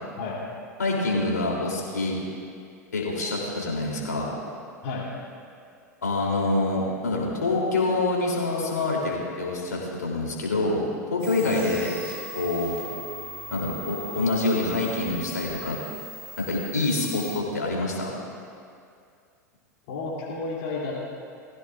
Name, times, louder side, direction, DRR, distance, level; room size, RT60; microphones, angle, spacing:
voice 1, 0.8-2.2 2.9-4.3 6.0-10.8 11.1-12.0 12.3-12.8 13.5-15.8 16.4-18.1, left 2 dB, 75° left, -3 dB, 3.3 m, -26 dB
sound 1, 11.2-17.4, equal, 50° right, 4.2 m, -40 dB
voice 2, 19.9-21.1, left 3 dB, 55° left, -7 dB, 3.1 m, -31 dB
20.5 x 15.5 x 2.6 m, 2.4 s
figure-of-eight pair, 90°, 9 cm